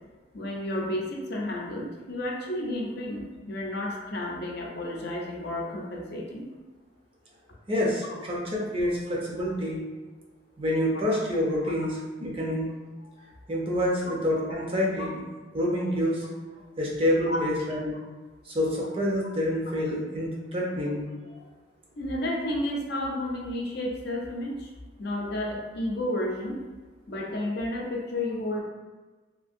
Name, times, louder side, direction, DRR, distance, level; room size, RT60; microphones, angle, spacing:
voice 1, 0.3-6.5 9.1-9.2 13.1-13.4 15.0-15.1 17.3-17.4 21.3-21.5 22.0-24.7 25.0-26.6 27.1-28.6, left 1 dB, 60° left, -1 dB, 0.5 m, -32 dB
voice 2, 7.7-9.8 10.6-12.7 13.5-15.2 15.5-16.2 16.8-17.9 18.5-21.0, left 1 dB, 30° right, -3 dB, 0.6 m, -27 dB
2.8 x 2.7 x 2.5 m, 1.3 s
head